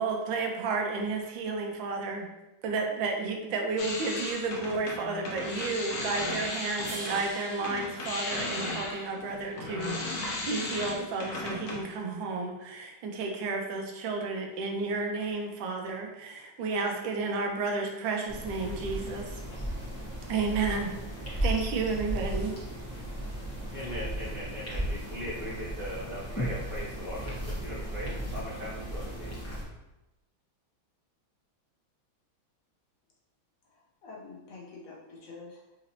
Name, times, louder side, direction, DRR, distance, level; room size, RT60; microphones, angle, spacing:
voice 1, 0.0-2.3 2.6-19.4 20.3-20.9 21.4-22.6, right 4 dB, 80° right, 2 dB, 1.3 m, -32 dB
sound 1, 3.8-7.3 7.6-11.9, left 2 dB, 65° left, 1.1 m, -36 dB
sound 2, 6.8-9.2, right 1 dB, 60° right, 0.6 m, -43 dB
sound 3, 18.3-29.6, equal, 25° left, 0.3 m, -35 dB
voice 2, 23.7-29.3, equal, 45° right, -13 dB, 1.6 m, -39 dB
voice 3, 33.7-35.8, left 3 dB, 80° left, -2 dB, 0.7 m, -47 dB
3.9 x 2.8 x 2.7 m, 0.97 s
omnidirectional pair, 2.1 m